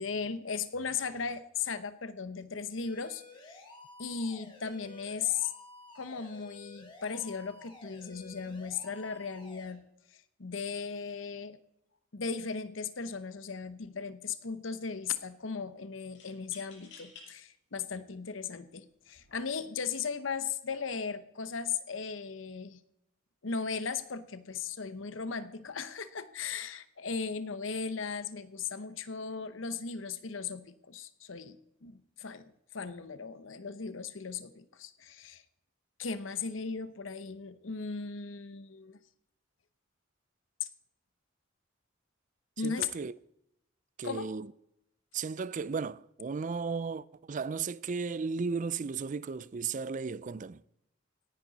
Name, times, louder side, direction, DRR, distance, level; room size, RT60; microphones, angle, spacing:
voice 1, 0.0-3.6 4.0-5.5 5.9-9.9 10.1-11.6 12.1-22.8 23.4-35.4 36.0-39.0 40.6-40.7 42.6-42.9 44.0-44.3, left 5 dB, 85° left, 0.9 m, -37 dB
sound 1, 2.8-9.7, left 3 dB, 25° left, 3.0 m, -53 dB
sound 2, 13.8-14.2 16.1-17.3 18.0-18.1 19.0-19.3, left 5 dB, 65° left, 6.1 m, -53 dB
voice 2, 42.6-43.1 44.0-44.5 45.1-50.6, right 5 dB, 40° right, 0.4 m, -35 dB
18.0 x 10.5 x 4.1 m
head